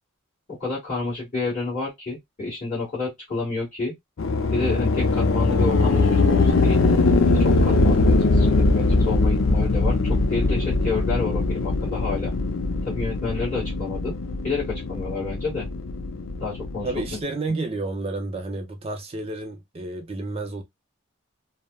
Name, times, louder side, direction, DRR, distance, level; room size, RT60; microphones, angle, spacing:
voice 1, 0.6-3.9 4.5-6.8 7.4-12.3 12.8-14.1 14.4-15.7 16.4-16.9, left 3 dB, 35° left, 1.6 m, -29 dB
sound 1, 4.2-17.2, left 3 dB, 65° left, 0.5 m, -21 dB
voice 2, 16.8-20.6, right 2 dB, 25° right, 0.4 m, -30 dB
3.3 x 2.0 x 2.2 m
head